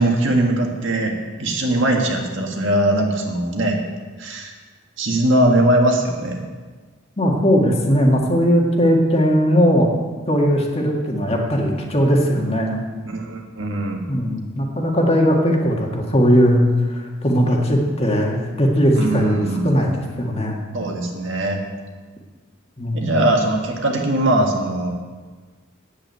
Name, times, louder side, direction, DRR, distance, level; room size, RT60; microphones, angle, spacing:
voice 1, 0.0-3.8 4.2-4.5 5.0-6.4 13.0-14.0 19.0-19.7 20.7-21.6 22.9-24.9, right 1 dB, 65° right, 1 dB, 1.8 m, -20 dB
voice 2, 7.2-9.9 10.3-12.8 14.1-20.6 22.8-23.1, equal, 30° left, 0 dB, 1.8 m, -18 dB
8.9 x 8.4 x 9.2 m, 1.4 s
head